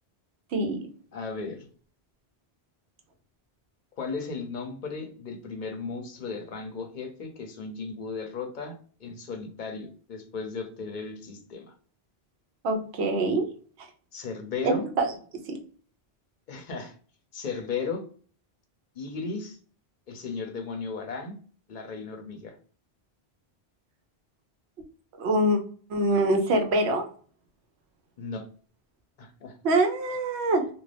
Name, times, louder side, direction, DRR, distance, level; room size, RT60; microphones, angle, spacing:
voice 1, 1.1-1.7 4.0-8.7 9.0-11.7 14.1-14.8 16.5-16.9 17.3-18.0 18.9-19.6 20.1-21.4 21.7-22.6 28.2-28.5 29.2-29.6, left 4 dB, 55° left, 4 dB, 0.7 m, -35 dB
voice 2, 12.6-13.5 13.8-13.9 14.6-15.1 15.5-15.6 25.2-25.6 25.9-27.1 29.6-30.7, right 1 dB, 85° right, 5 dB, 0.9 m, -24 dB
2.5 x 2.4 x 3.2 m, 0.43 s
omnidirectional pair, 1.1 m